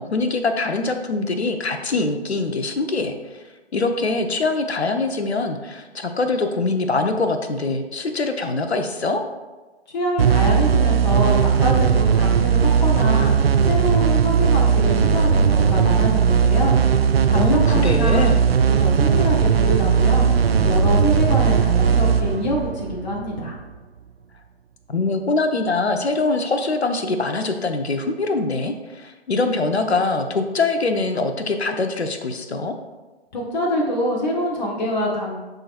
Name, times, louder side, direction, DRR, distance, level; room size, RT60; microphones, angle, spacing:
voice 1, 0.0-3.4 3.7-9.2 17.3-18.4 24.9-32.7, left 3 dB, 75° left, 6 dB, 0.9 m, -23 dB
voice 2, 9.9-13.3 13.6-16.8 17.3-18.2 18.7-20.3 20.6-23.5 33.3-35.4, left 1 dB, 40° left, -2 dB, 1.3 m, -25 dB
sound 1, 10.2-23.5, right 7 dB, 65° right, 0.5 m, -18 dB
11.5 x 3.9 x 2.5 m, 1.2 s
figure-of-eight pair, 130°, 33 cm